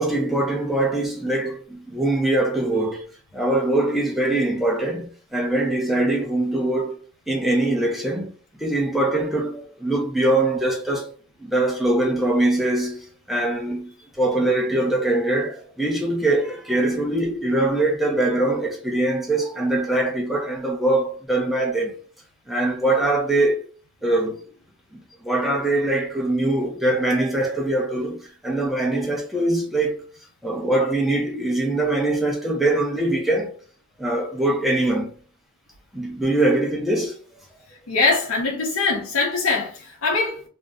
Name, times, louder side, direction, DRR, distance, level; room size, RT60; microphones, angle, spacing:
voice 1, 0.0-3.0 3.3-5.0 5.3-7.0 7.3-8.3 8.6-11.1 11.4-13.9 14.2-21.9 22.5-23.6 24.0-24.4 25.2-29.9 30.4-33.5 34.0-35.1 35.9-37.1, right 2 dB, ahead, 0.6 m, -22 dB
voice 2, 37.9-40.5, left 3 dB, 85° left, 0.7 m, -22 dB
2.6 x 2.1 x 3.5 m
head